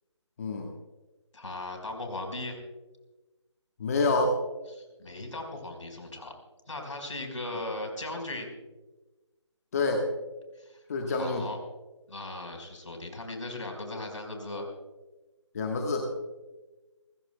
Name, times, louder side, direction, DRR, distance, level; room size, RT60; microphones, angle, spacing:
voice 1, 1.3-2.6 4.7-6.3 6.7-8.5 10.6-11.6 12.1-14.7, left 2 dB, 75° left, 3 dB, 4.8 m, -38 dB
voice 2, 3.8-4.4 9.7-10.1 10.9-11.4 15.5-16.1, left 3 dB, 30° left, 2 dB, 1.3 m, -27 dB
29.0 x 16.5 x 2.3 m, 1.2 s
figure-of-eight pair, 165°, 16 cm